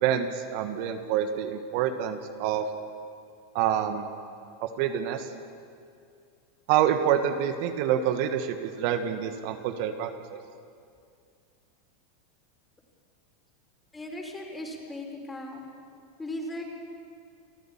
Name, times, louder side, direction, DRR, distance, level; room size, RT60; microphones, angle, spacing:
voice 1, 0.0-2.7 3.5-4.0 4.6-5.3 6.7-10.4, right 9 dB, 55° right, 7 dB, 1.5 m, -27 dB
voice 2, 13.9-15.6 16.2-16.6, left 1 dB, 15° left, 2 dB, 5.1 m, -37 dB
28.5 x 14.0 x 7.4 m, 2.3 s
hypercardioid pair, 90°, 0 cm